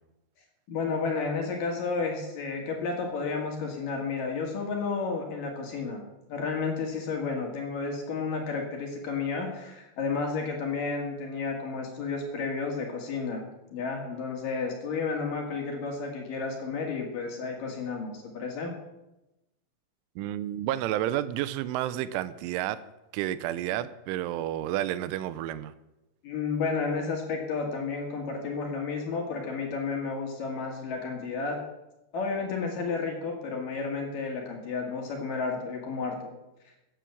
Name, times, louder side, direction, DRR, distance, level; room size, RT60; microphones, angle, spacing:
voice 1, 0.7-18.7 26.2-31.6 32.1-36.3, left 4 dB, 55° left, 3.2 m, -32 dB
voice 2, 20.2-22.8 23.1-25.7, right 13 dB, 90° right, 3.2 m, -30 dB
15.0 x 9.2 x 7.1 m
omnidirectional pair, 5.4 m